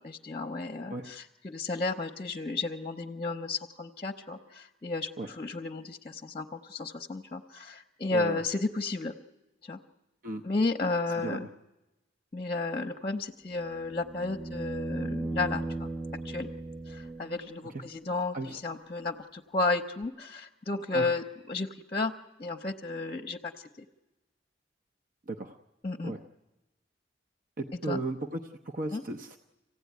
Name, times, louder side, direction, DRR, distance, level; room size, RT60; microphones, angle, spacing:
voice 1, 0.0-9.1 9.6-9.8 10.4-11.5 12.3-15.9 16.2-16.5 16.9-22.1 22.4-23.7 25.8-26.1 27.9-28.0 28.9-29.0, left 3 dB, 30° left, 4 dB, 0.8 m, -33 dB
voice 2, 8.1-8.4 10.2-10.4 11.1-11.5 17.7-17.8 18.3-18.6 20.9-21.1 25.3-25.6 26.0-26.2 27.6-29.5, right 2 dB, 50° right, 5 dB, 0.9 m, -35 dB
sound 1, 13.5-17.6 20.0-20.1, right 2 dB, 5° right, 0.7 m, -37 dB
25.0 x 16.0 x 9.5 m, 1.0 s
head